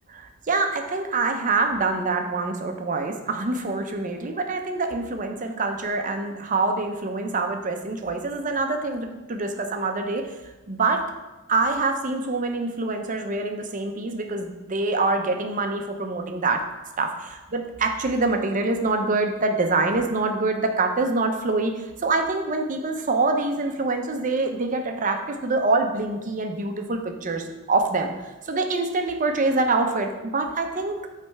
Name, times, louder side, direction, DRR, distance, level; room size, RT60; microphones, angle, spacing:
voice 1, 0.5-10.3 10.7-11.0 11.5-16.7 17.0-31.0, right 3 dB, 40° right, 5 dB, 0.6 m, -25 dB
8.5 x 3.3 x 4.6 m, 1.1 s
head